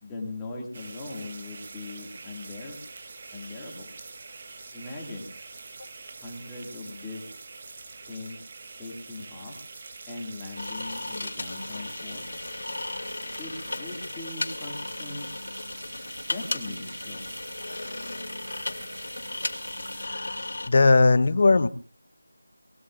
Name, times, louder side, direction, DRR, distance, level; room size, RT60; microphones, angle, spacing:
voice 1, 0.0-2.8 3.3-3.9 4.7-5.3 6.2-7.2 8.1-8.4 8.8-9.6 10.1-12.3 13.4-15.3 16.3-17.3, left 2 dB, 10° left, -2 dB, 2.2 m, -39 dB
sound 1, 0.7-20.1, right 3 dB, 30° right, 1.1 m, -45 dB
sound 2, 10.6-20.7, left 2 dB, 60° left, 2.9 m, -35 dB
voice 2, 19.9-20.4 20.7-21.7, left 3 dB, 35° left, 14 dB, 0.9 m, -19 dB
24.5 x 20.0 x 2.5 m, 0.39 s
figure-of-eight pair, 175°, 0 cm